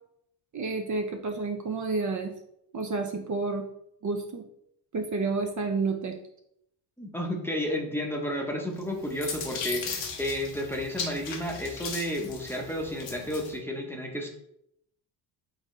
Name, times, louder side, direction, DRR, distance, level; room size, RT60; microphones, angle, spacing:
voice 1, 0.5-2.3 2.7-3.7 4.0-4.4 4.9-6.2, right 3 dB, 40° right, 3 dB, 0.6 m, -30 dB
voice 2, 7.0-14.3, equal, 5° left, 0 dB, 0.8 m, -32 dB
sound 1, 8.8-13.5, left 5 dB, 70° left, 1.0 m, -37 dB
3.9 x 3.7 x 3.2 m, 0.75 s
cardioid pair, 80°, 45 cm